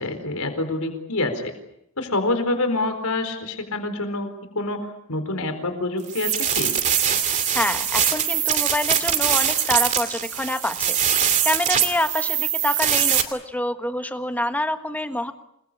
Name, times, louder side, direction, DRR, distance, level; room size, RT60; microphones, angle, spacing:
voice 1, 0.0-1.5 2.0-4.3 4.5-6.7, left 2 dB, 80° left, 8 dB, 4.4 m, -26 dB
sound 1, 6.1-13.2, right 9 dB, 35° right, 2.6 m, -22 dB
voice 2, 7.5-15.3, left 1 dB, 5° left, 8 dB, 1.5 m, -27 dB
28.5 x 21.5 x 8.6 m, 0.77 s
head